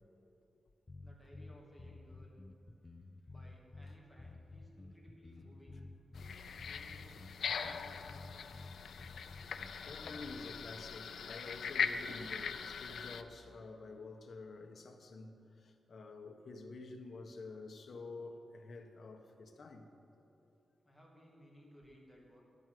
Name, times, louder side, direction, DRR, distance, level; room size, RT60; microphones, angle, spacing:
sound 1, 0.9-10.5, left 2 dB, 25° left, 0.6 m, -52 dB
voice 1, 1.0-2.4 3.3-5.9 6.5-8.6 20.8-22.4, equal, ahead, 2.5 m, -60 dB
sound 2, 6.1-13.2, left 6 dB, 75° left, 0.6 m, -41 dB
voice 2, 9.8-19.9, left 3 dB, 55° left, 1.2 m, -49 dB
11.0 x 11.0 x 7.7 m
wide cardioid pair, 165°, 0 cm